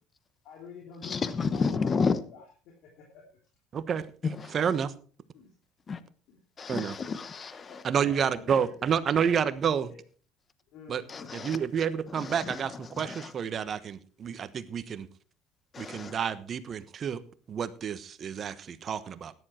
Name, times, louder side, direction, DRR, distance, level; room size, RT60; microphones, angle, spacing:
voice 1, 0.4-3.2 5.3-5.5 6.3-6.4 7.7-9.0 9.8-10.0 10.7-11.5, left 5 dB, 70° left, 3.0 m, -49 dB
voice 2, 1.0-2.2 4.2-4.7 5.9-6.0 6.6-7.8 11.1-11.6 12.1-13.3 15.7-16.2, left 5 dB, 30° left, 1.0 m, -31 dB
voice 3, 3.7-4.1 4.5-4.9 6.7-7.0 7.8-9.9 10.9-11.0 11.3-15.1 15.8-17.2 17.5-19.3, right 7 dB, 40° right, 1.2 m, -29 dB
14.0 x 10.5 x 4.4 m
supercardioid pair, 105°, 0 cm